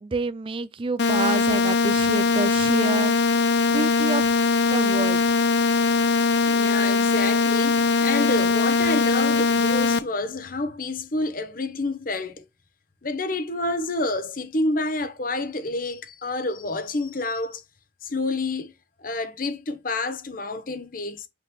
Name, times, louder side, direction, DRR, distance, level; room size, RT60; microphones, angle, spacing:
voice 1, 0.0-3.1 3.7-4.3 4.7-5.2, right 3 dB, 30° right, 0.4 m, -28 dB
sound 1, 1.0-10.0, left 4 dB, 65° left, 0.6 m, -21 dB
voice 2, 6.5-12.4 13.0-17.6 18.0-18.7 19.0-21.3, left 2 dB, 50° left, 1.0 m, -28 dB
8.1 x 3.9 x 3.0 m
head